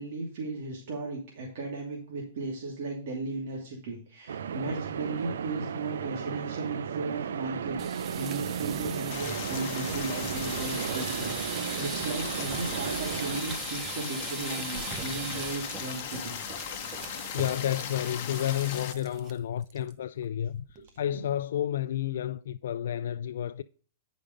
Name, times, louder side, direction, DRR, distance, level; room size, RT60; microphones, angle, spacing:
voice 1, 0.0-16.4 16.8-16.9 21.1-21.2, right 3 dB, 55° right, 2.5 m, -36 dB
sound 1, 4.3-13.4, right 7 dB, 80° right, 0.6 m, -35 dB
sound 2, 7.7-19.3 19.6-19.9 20.2-20.3 20.7-21.1, right 7 dB, 25° right, 0.7 m, -40 dB
Stream, 9.1-18.9, left 11 dB, 45° left, 1.0 m, -38 dB
voice 2, 17.3-23.6, left 11 dB, 70° left, 0.3 m, -31 dB
9.9 x 5.3 x 5.1 m
hypercardioid pair, 150°, 0 cm